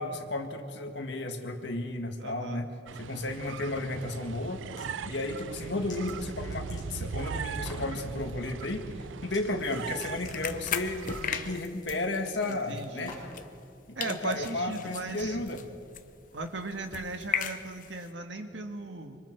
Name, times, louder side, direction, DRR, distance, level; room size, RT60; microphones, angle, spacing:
voice 1, 0.0-2.7 3.0-4.6 5.0-8.8 9.2-13.2 14.0-15.6, left 2 dB, 65° left, 4 dB, 1.9 m, -33 dB
voice 2, 2.2-2.7 12.5-13.2 14.0-15.4 16.3-19.2, right 2 dB, 75° right, 5 dB, 1.7 m, -38 dB
sound 1, 2.9-11.6, right 6 dB, 90° right, 0.5 m, -39 dB
sound 2, 4.5-4.9 5.3-7.2 7.5-7.9 9.2-9.4 9.7-13.4, left 2 dB, 20° left, 5.3 m, -49 dB
sound 3, 9.6-13.7 14.0-18.1, left 8 dB, 45° left, 0.9 m, -38 dB
25.5 x 24.5 x 4.7 m, 2.3 s
head